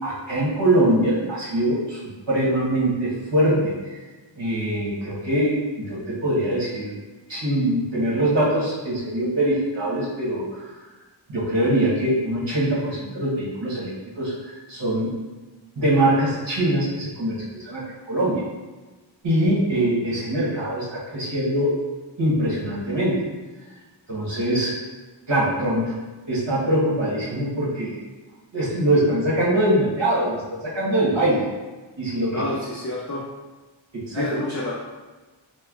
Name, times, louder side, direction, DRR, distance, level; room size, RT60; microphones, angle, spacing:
voice 1, 0.0-2.0 2.3-4.0 4.4-6.9 7.3-10.7 11.3-15.1 15.8-18.4 19.2-21.8 22.2-23.2 24.1-24.8 25.3-25.9 26.3-28.0 28.5-31.4 32.0-32.4 33.9-34.3, right 1 dB, 65° right, -7 dB, 1.2 m, -23 dB
voice 2, 32.3-33.2 34.1-34.7, left 1 dB, 35° left, -7 dB, 0.6 m, -28 dB
4.1 x 2.1 x 2.4 m, 1.2 s
wide cardioid pair, 50°, 47 cm